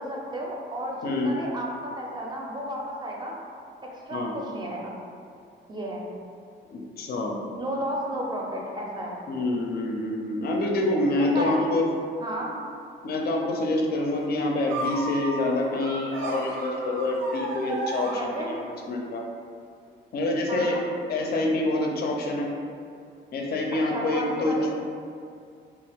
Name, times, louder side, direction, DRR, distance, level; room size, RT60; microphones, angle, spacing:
voice 1, 0.0-3.4 3.9-4.9 5.7-6.1 7.6-9.2 11.2-11.7 12.2-12.6 18.1-18.5 20.5-21.0 23.9-24.8, right 1 dB, 20° right, -2 dB, 0.5 m, -33 dB
voice 2, 1.0-1.3 4.1-4.3 6.7-7.4 9.3-11.9 13.0-19.2 20.1-20.8 21.1-22.5 23.3-24.7, left 2 dB, 50° left, 0 dB, 0.4 m, -26 dB
sound 1, 14.7-18.8, right 2 dB, 80° right, 0.5 m, -34 dB
2.4 x 2.3 x 3.3 m, 2.4 s
cardioid pair, 90°, 20 cm